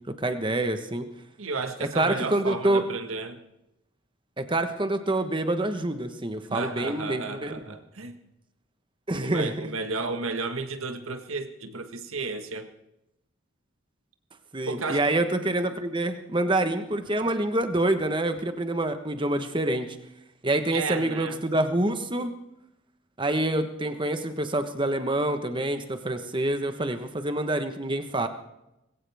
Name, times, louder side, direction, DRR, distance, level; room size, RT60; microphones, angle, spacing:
voice 1, 0.2-1.1 1.8-2.8 4.4-7.6 9.1-9.7 14.5-20.0 20.4-22.3 23.2-28.3, right 1 dB, 25° right, 8 dB, 1.2 m, -26 dB
voice 2, 1.4-3.4 6.5-8.1 9.2-12.7 14.6-15.0 20.7-21.4, right 3 dB, 80° right, 7 dB, 1.6 m, -33 dB
20.5 x 17.0 x 3.6 m, 0.89 s
head